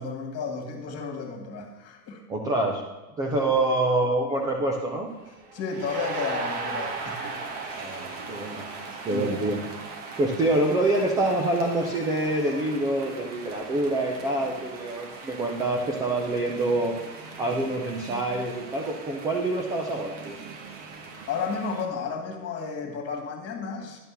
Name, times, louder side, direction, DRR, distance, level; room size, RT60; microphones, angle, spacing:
voice 1, 0.0-2.2 3.4-3.5 5.5-7.5 9.1-9.3 21.3-24.0, left 5 dB, 30° left, 3 dB, 2.0 m, -32 dB
voice 2, 2.3-2.8 3.2-5.1 7.8-8.7 9.0-9.6 10.2-17.0 17.4-20.4, right 2 dB, 10° right, 1 dB, 0.4 m, -26 dB
sound 1, 5.2-21.9, right 4 dB, 40° right, 1.4 m, -39 dB
11.0 x 4.4 x 6.8 m, 1.1 s
hypercardioid pair, 125°, 48 cm